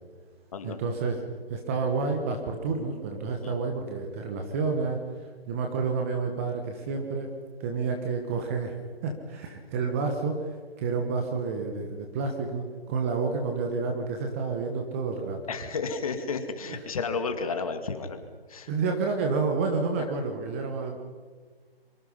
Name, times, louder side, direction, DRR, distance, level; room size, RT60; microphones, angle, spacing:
voice 1, 0.6-1.2 1.5-5.0 5.5-7.3 7.6-8.8 9.0-15.4 16.7-16.8 18.7-21.0, right 4 dB, 15° right, 3 dB, 1.4 m, -29 dB
voice 2, 15.5-18.2 18.5-18.7, left 4 dB, 35° left, 8 dB, 2.3 m, -32 dB
26.5 x 24.0 x 5.6 m, 1.5 s
figure-of-eight pair, 160°, 30 cm